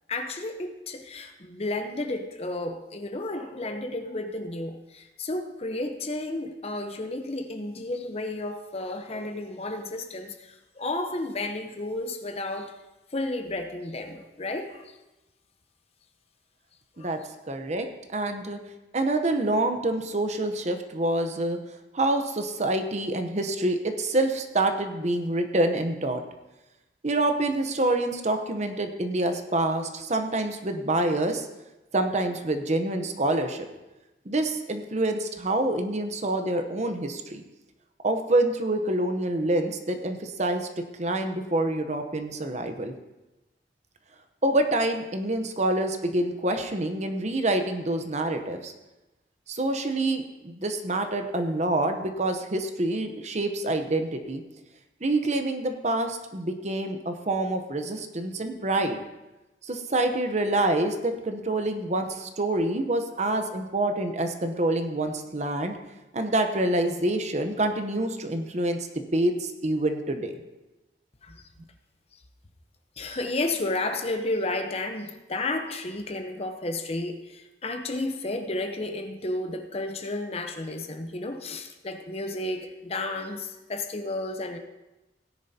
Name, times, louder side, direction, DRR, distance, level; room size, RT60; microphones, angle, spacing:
voice 1, 0.1-12.7 13.1-15.0 17.0-17.1 71.2-71.5 73.0-84.6, left 2 dB, 35° left, 6 dB, 0.8 m, -32 dB
voice 2, 17.5-17.9 18.1-18.6 18.9-21.6 21.9-26.2 27.0-31.5 31.9-33.7 34.2-37.4 38.0-40.7 41.0-42.9 44.4-48.7 49.5-54.4 55.0-59.0 59.6-65.8 66.1-70.4, right 2 dB, 40° right, 7 dB, 0.8 m, -26 dB
17.5 x 10.0 x 2.8 m, 1.0 s
head